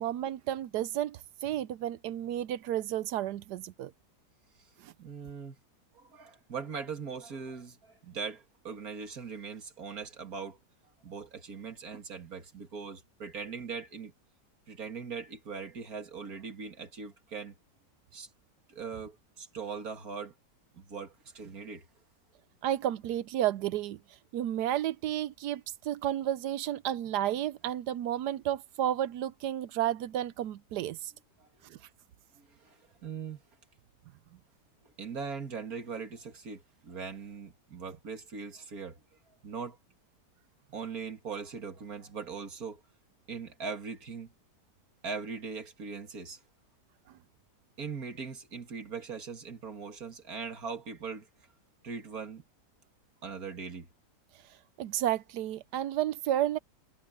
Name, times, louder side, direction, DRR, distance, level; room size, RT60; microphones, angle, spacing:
voice 1, 0.0-3.9 4.8-4.9 22.6-24.0 24.3-31.1 31.6-31.8 54.8-56.6, right 12 dB, 80° right, 1.2 m, -32 dB
voice 2, 5.0-5.6 5.9-10.6 11.0-14.1 14.7-17.5 18.1-18.3 18.7-20.3 20.7-21.8 31.4-31.5 32.3-33.4 34.8-39.0 39.4-39.8 40.7-42.8 43.3-44.3 45.0-46.4 47.8-51.3 51.8-52.4 53.2-53.9, right 5 dB, 60° right, 2.5 m, -40 dB
omnidirectional pair, 1.8 m